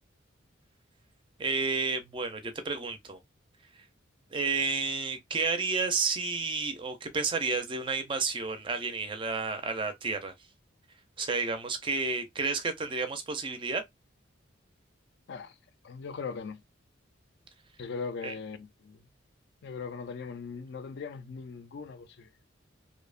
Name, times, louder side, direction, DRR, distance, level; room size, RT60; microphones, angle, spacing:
voice 1, 1.4-3.2 3.7-3.9 4.3-10.3 11.2-13.8 18.2-18.3, right 4 dB, 25° right, 0.4 m, -31 dB
voice 2, 15.8-16.6 17.8-19.1 19.6-22.3, left 5 dB, 60° left, 0.4 m, -39 dB
2.7 x 2.0 x 2.4 m
head